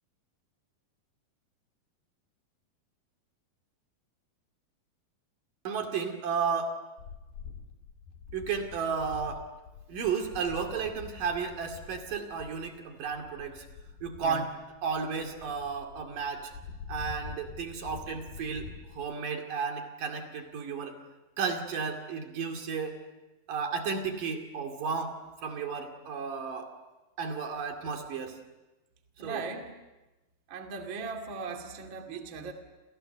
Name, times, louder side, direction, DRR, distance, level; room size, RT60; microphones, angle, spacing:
voice 1, 5.6-6.8 8.3-9.4 9.9-13.6 14.0-14.5 14.8-16.5 16.9-21.0 21.4-23.0 23.5-25.2 25.4-26.7 27.2-28.4 29.2-29.4, right 5 dB, 65° right, 4 dB, 3.9 m, -33 dB
sound 1, 7.0-19.1, left 6 dB, 75° left, 4.1 m, -46 dB
voice 2, 14.2-14.5 29.2-29.8 30.5-32.5, right 4 dB, 35° right, 4 dB, 2.7 m, -38 dB
29.5 x 28.5 x 6.8 m, 1.1 s
omnidirectional pair, 4.2 m